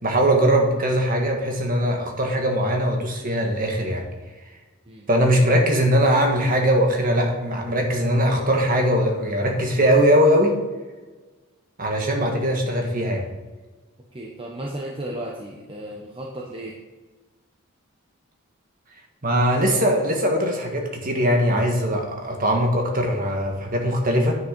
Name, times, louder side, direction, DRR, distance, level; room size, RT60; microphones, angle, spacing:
voice 1, 0.0-4.0 5.1-10.5 11.8-13.2 19.2-24.4, equal, 40° right, 2 dB, 1.6 m, -21 dB
voice 2, 14.1-16.8, right 1 dB, 25° right, -1 dB, 0.9 m, -34 dB
9.4 x 6.3 x 5.2 m, 1.2 s
head